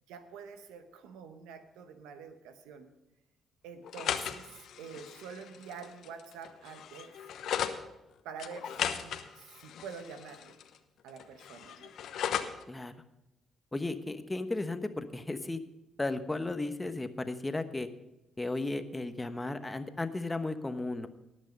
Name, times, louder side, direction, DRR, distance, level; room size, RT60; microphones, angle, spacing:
voice 1, 0.1-2.9 3.6-7.1 8.2-10.5 11.0-11.9, right 6 dB, 80° right, 9 dB, 1.1 m, -47 dB
sound 1, 3.8-7.8 8.4-10.8 11.1-12.6, left 9 dB, 70° left, 0.9 m, -37 dB
voice 2, 13.7-15.6 16.0-17.9 18.4-21.1, left 2 dB, 20° left, 10 dB, 1.1 m, -34 dB
18.0 x 6.4 x 5.2 m, 0.93 s
supercardioid pair, 55°, 0 cm